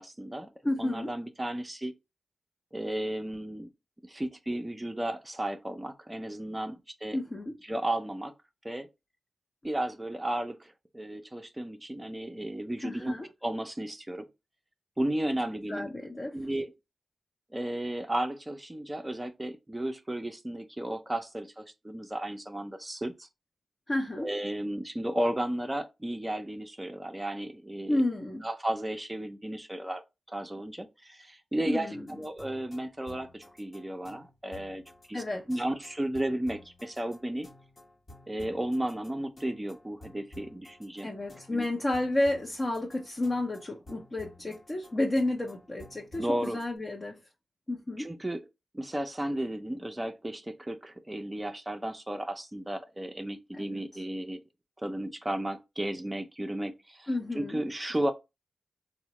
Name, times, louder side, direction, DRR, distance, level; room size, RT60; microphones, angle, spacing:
voice 1, 0.0-0.5 0.8-1.9 2.7-3.7 4.1-7.2 7.7-8.3 8.6-8.9 9.6-13.2 13.4-14.2 15.0-15.9 16.3-16.7 17.5-23.3 24.2-28.0 28.4-30.0 30.3-34.8 35.1-37.5 38.3-41.1 41.5-41.6 46.2-46.6 48.0-48.5 48.7-54.4 54.8-58.1, right 1 dB, 15° right, 0.5 m, -34 dB
voice 2, 0.6-1.1 7.1-7.5 12.8-13.2 15.7-16.4 23.9-24.3 27.9-28.5 31.7-32.1 35.1-35.4 41.0-47.2 47.7-48.1 53.5-53.8 57.1-57.6, left 1 dB, 35° left, 0.6 m, -31 dB
sound 1, 32.1-46.7, left 1 dB, 55° left, 1.0 m, -53 dB
3.6 x 2.1 x 2.9 m
cardioid pair, 50°, 0 cm